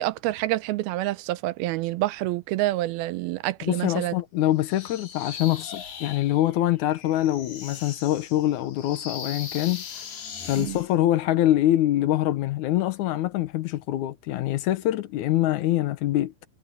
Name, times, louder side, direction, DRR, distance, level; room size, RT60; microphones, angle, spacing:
voice 1, 0.0-4.1 10.6-10.8, right 17 dB, 80° right, 2.6 m, -27 dB
voice 2, 3.6-9.8 10.5-16.3, left 14 dB, 70° left, 2.0 m, -24 dB
sound 1, 4.6-10.9, left 7 dB, 90° left, 5.1 m, -39 dB
omnidirectional pair, 4.4 m